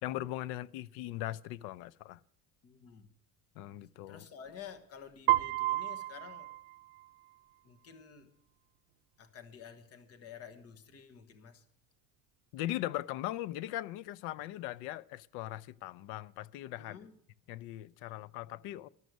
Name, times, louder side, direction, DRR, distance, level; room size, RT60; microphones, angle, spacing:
voice 1, 0.0-2.2 3.6-4.2 12.5-17.0 17.5-18.9, left 14 dB, 85° left, 0.6 m, -39 dB
voice 2, 2.6-3.1 4.1-6.5 7.6-8.3 9.2-11.6 16.8-17.1 18.0-18.6, left 7 dB, 40° left, 1.3 m, -51 dB
Piano, 5.3-7.3, right 16 dB, 75° right, 0.6 m, -32 dB
12.5 x 6.3 x 9.2 m
cardioid pair, 150°, 38 cm